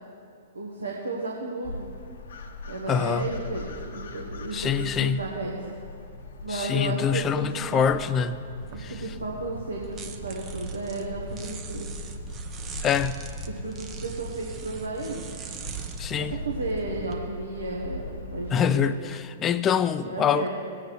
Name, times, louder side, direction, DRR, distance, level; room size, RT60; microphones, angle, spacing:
voice 1, 0.5-1.9 2.7-5.7 6.4-8.0 8.7-11.9 13.5-15.2 16.1-19.0 20.0-20.5, right 2 dB, 80° right, -2 dB, 1.3 m, -33 dB
sound 1, 1.6-18.5, left 3 dB, 65° left, 1.2 m, -40 dB
voice 2, 2.9-3.3 4.5-5.2 6.5-8.5 8.8-8.9 12.8-13.3 16.0-16.3 18.5-20.5, left 8 dB, 25° left, 13 dB, 0.4 m, -25 dB
sound 2, 8.6-17.2, right 5 dB, 25° right, 0.8 m, -40 dB
17.5 x 8.5 x 3.1 m, 2.4 s
figure-of-eight pair, 110°, 0 cm